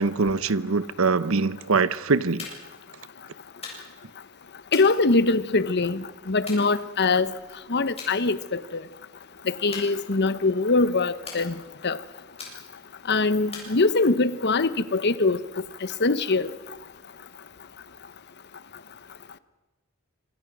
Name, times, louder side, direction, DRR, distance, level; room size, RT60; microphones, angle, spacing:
voice 1, 0.0-2.4, right 4 dB, 70° right, 0.9 m, -23 dB
sound 1, 2.4-2.8 3.6-4.1 4.7-5.7 6.5-7.3 8.0-8.2 8.6-8.9 9.7-10.5 11.3-11.9 12.4-12.9 13.5-14.3, left 4 dB, 30° left, 8.0 m, -42 dB
voice 2, 4.7-7.3 7.7-8.6 9.5-11.6 11.8-12.0 13.1-15.4 16.0-16.5, left 3 dB, 55° left, 1.1 m, -22 dB
26.5 x 26.0 x 6.1 m
head